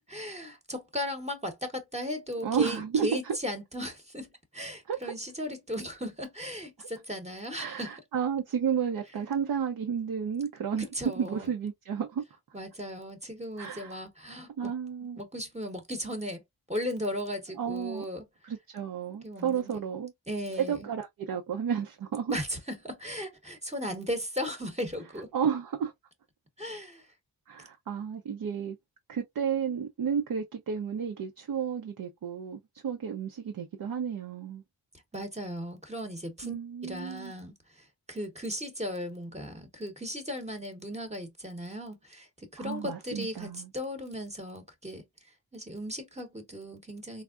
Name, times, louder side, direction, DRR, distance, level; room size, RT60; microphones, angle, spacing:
voice 1, 0.1-7.9 10.9-11.5 12.5-14.7 15.1-16.4 16.7-18.2 19.2-19.8 20.3-20.9 22.3-25.3 26.6-27.1 35.1-45.0 45.5-47.2, equal, 15° right, 0.9 m, -36 dB
voice 2, 2.4-3.4 4.9-5.1 6.8-6.9 7.6-10.9 11.2-12.2 13.6-14.0 14.6-15.2 17.6-18.1 18.4-20.1 20.6-22.3 25.3-25.9 27.5-28.8 29.1-34.6 36.4-37.3 42.6-43.7, right 7 dB, 60° right, 0.6 m, -32 dB
3.5 x 2.0 x 2.3 m
cardioid pair, 55°, 41 cm